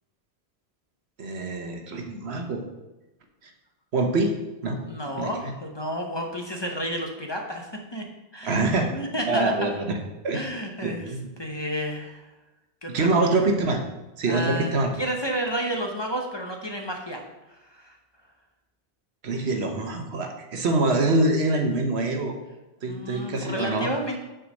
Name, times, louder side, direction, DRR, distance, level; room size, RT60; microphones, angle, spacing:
voice 1, 1.2-2.6 3.4-3.5 3.9-4.3 4.6-4.8 5.2-5.5 8.4-8.9 9.3-10.0 10.2-10.4 10.8-11.3 12.9-13.8 14.2-14.9 19.2-22.3 22.8-23.9, right 2 dB, 75° right, 3 dB, 1.2 m, -25 dB
voice 2, 4.8-8.1 8.3-8.6 8.9-9.7 10.3-11.1 11.4-12.3 12.8-13.1 14.3-18.0 22.8-24.2, equal, 25° left, 1 dB, 0.8 m, -31 dB
6.4 x 4.7 x 6.3 m, 1.0 s
omnidirectional pair, 1.1 m